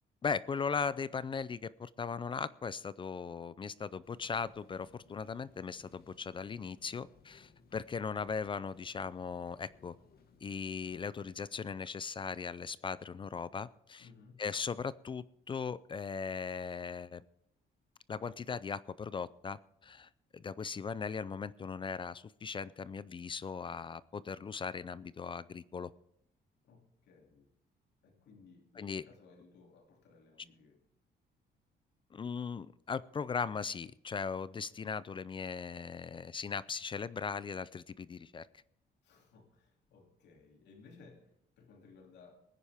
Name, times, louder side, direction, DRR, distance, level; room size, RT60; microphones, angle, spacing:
voice 1, 0.2-9.9 10.4-14.1 14.4-17.2 18.1-25.9 28.8-29.0 32.1-38.5, left 5 dB, 30° left, 18 dB, 0.4 m, -38 dB
sound 1, 4.0-11.4, left 5 dB, 60° left, 1.6 m, -64 dB
voice 2, 14.0-14.4 26.6-27.5 28.0-30.8 39.0-42.4, left 4 dB, 80° left, 2 dB, 2.7 m, -59 dB
19.5 x 9.9 x 3.5 m, 0.73 s
cardioid pair, 125°, 18 cm